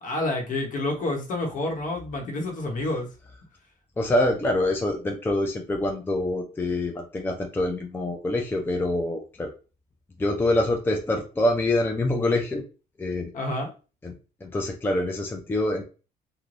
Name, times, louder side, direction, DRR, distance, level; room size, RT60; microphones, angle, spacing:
voice 1, 0.0-3.1 13.3-13.7, left 2 dB, 50° left, 2 dB, 1.0 m, -28 dB
voice 2, 4.0-9.5 10.2-12.6 13.0-13.3 14.0-14.1 14.4-15.8, left 1 dB, 10° left, 1 dB, 0.5 m, -25 dB
3.2 x 2.3 x 2.5 m, 0.33 s
cardioid pair, 110°, 17 cm